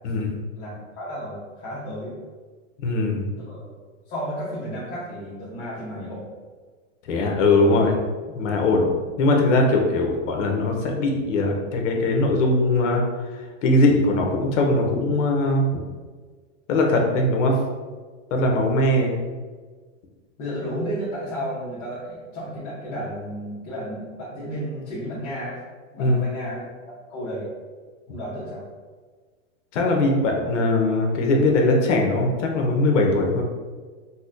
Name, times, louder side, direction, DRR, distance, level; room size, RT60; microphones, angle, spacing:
voice 1, 0.0-0.4 2.8-3.3 7.1-8.0 8.3-8.9 9.2-13.0 13.6-15.6 16.7-17.6 18.3-19.2 26.0-26.2 29.7-33.4, left 2 dB, 70° left, 1 dB, 0.8 m, -20 dB
voice 2, 0.5-2.1 3.4-3.7 4.1-6.2 7.6-7.7 20.4-25.6 25.9-26.7 27.1-27.5 28.1-28.6, equal, 35° left, -10 dB, 0.9 m, -32 dB
4.0 x 2.1 x 2.5 m, 1.4 s
supercardioid pair, 150°, 38 cm